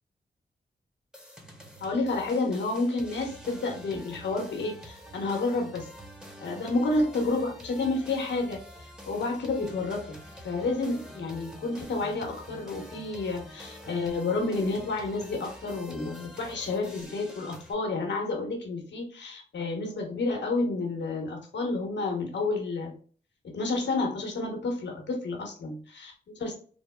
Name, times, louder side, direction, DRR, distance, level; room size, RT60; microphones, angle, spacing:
sound 1, 1.1-17.7, equal, 5° right, 0.7 m, -47 dB
voice 1, 1.8-5.9 6.4-8.6 9.1-10.2 10.4-22.9 23.4-26.6, left 3 dB, 80° left, 1 dB, 0.9 m, -30 dB
3.4 x 2.0 x 2.2 m, 0.42 s
cardioid pair, 50°, 18 cm